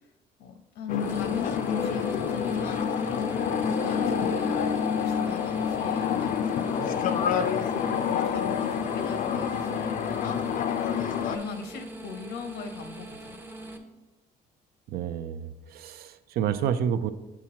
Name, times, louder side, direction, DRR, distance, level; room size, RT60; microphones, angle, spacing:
voice 1, 0.4-3.0 3.5-7.1 7.5-10.3 10.7-13.4, left 5 dB, 80° left, 7 dB, 0.8 m, -41 dB
sound 1, 0.9-11.4, left 7 dB, 55° left, 0.4 m, -27 dB
sound 2, 1.0-13.8, right 1 dB, 10° right, 0.6 m, -41 dB
voice 2, 14.9-17.1, right 8 dB, 65° right, 11 dB, 0.4 m, -29 dB
7.2 x 5.8 x 2.9 m, 1.0 s
cardioid pair, 110°, 17 cm